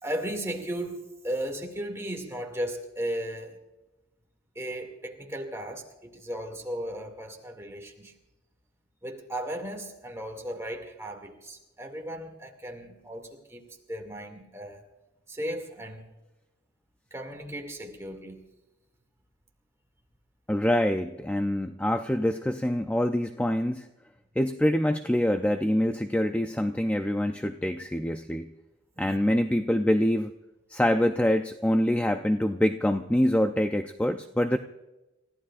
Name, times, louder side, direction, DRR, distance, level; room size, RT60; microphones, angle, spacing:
voice 1, 0.0-3.6 4.6-8.1 9.0-14.9 15.3-16.1 17.1-18.4 29.0-29.2, equal, 15° right, 2 dB, 2.3 m, -36 dB
voice 2, 20.5-23.9 24.4-28.5 29.0-30.3 30.7-34.6, left 1 dB, 5° left, 7 dB, 0.4 m, -25 dB
30.0 x 15.0 x 2.5 m, 1.0 s
head